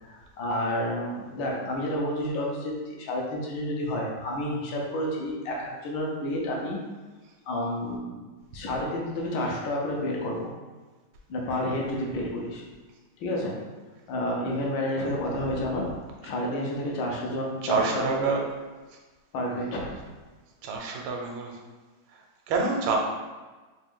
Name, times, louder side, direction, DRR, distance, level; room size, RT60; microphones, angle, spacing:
voice 1, 0.0-6.8 7.5-8.2 8.5-10.5 11.3-12.6 13.2-13.6 14.1-15.9 16.2-18.3 19.3-19.8, left 1 dB, 70° left, -2 dB, 1.5 m, -30 dB
voice 2, 17.6-18.5 20.6-21.6 22.1-22.2 22.5-23.0, right 4 dB, 90° right, 1 dB, 1.5 m, -27 dB
4.0 x 2.6 x 3.6 m, 1.3 s
omnidirectional pair, 2.2 m